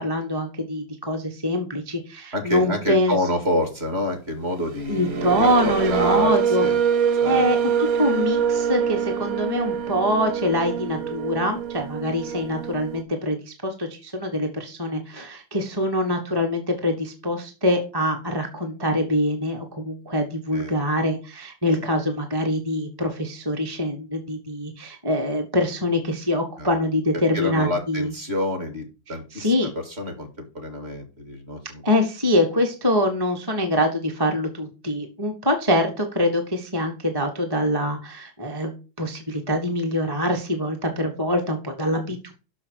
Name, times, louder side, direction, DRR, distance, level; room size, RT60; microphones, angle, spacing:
voice 1, 0.0-3.2 4.9-6.7 7.2-7.6 8.0-28.1 29.3-29.7 31.8-42.3, left 1 dB, 15° right, 2 dB, 1.3 m, -24 dB
voice 2, 2.3-6.8 7.2-7.5 20.5-20.8 26.6-26.7 27.3-31.8 42.1-42.2, left 1 dB, 35° right, 5 dB, 2.5 m, -28 dB
sound 1, 4.6-13.0, right 8 dB, 65° right, 0.9 m, -25 dB
6.4 x 6.2 x 6.4 m, 0.32 s
omnidirectional pair, 2.1 m